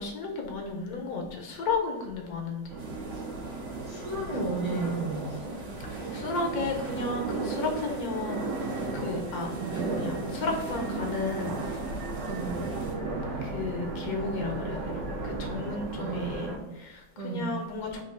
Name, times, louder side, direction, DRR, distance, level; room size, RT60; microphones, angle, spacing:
voice 1, 0.0-2.8 6.1-8.4 8.9-9.6 9.9-11.7 13.4-18.0, left 3 dB, 65° left, 2 dB, 1.1 m, -33 dB
sound 1, 2.7-16.6, right 3 dB, 90° right, 1.4 m, -34 dB
sound 2, 2.8-12.9, right 2 dB, 75° right, 1.8 m, -46 dB
voice 2, 3.9-5.6 9.6-9.8 12.2-12.6 16.0-16.3 17.2-17.5, right 3 dB, 45° right, -5 dB, 0.5 m, -33 dB
3.5 x 2.7 x 4.4 m, 1.1 s
omnidirectional pair, 1.9 m